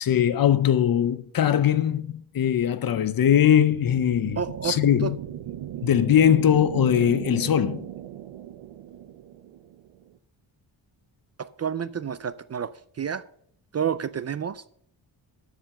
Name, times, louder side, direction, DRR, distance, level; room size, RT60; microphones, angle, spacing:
voice 1, 0.0-5.2 5.8-7.9, left 9 dB, 50° left, 0.7 m, -21 dB
sound 1, 3.6-10.1, right 12 dB, 90° right, 0.7 m, -37 dB
voice 2, 4.4-5.1 11.4-13.2 13.7-14.6, right 7 dB, 35° right, 0.4 m, -30 dB
13.0 x 5.1 x 6.5 m
cardioid pair, 120°, 46 cm